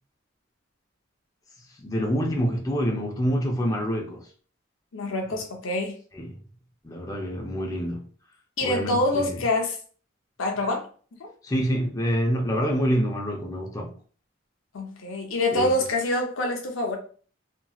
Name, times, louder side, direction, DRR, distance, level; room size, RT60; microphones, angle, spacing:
voice 1, 1.8-4.2 6.1-6.3 6.8-8.0 8.6-9.4 11.4-13.9 15.5-15.7, equal, 15° left, 0.5 m, -26 dB
voice 2, 4.9-6.0 8.6-9.8 10.4-10.9 11.2-11.3 14.7-17.0, left 1 dB, 85° left, 0.6 m, -26 dB
2.9 x 2.8 x 2.3 m
head